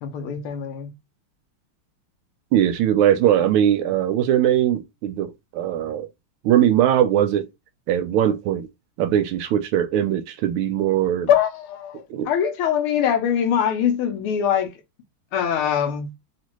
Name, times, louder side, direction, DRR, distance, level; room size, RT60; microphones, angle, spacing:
voice 1, 0.0-0.9 11.3-14.8 15.3-16.1, left 9 dB, 80° left, 1.6 m, -23 dB
voice 2, 2.5-6.1 6.4-7.5 7.9-8.7 9.0-11.3 12.1-12.3, right 10 dB, 80° right, 1.4 m, -20 dB
4.2 x 2.4 x 3.0 m
omnidirectional pair, 2.4 m